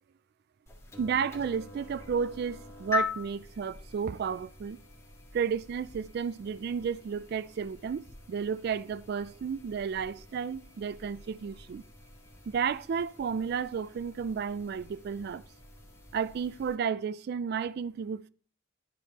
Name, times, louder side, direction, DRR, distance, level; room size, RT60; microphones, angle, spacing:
sound 1, 0.7-16.8, left 3 dB, 15° left, 2.0 m, -43 dB
voice 1, 1.0-4.8 5.3-11.8 12.5-15.4 16.1-18.3, right 6 dB, 55° right, 0.3 m, -32 dB
11.0 x 4.9 x 4.1 m
head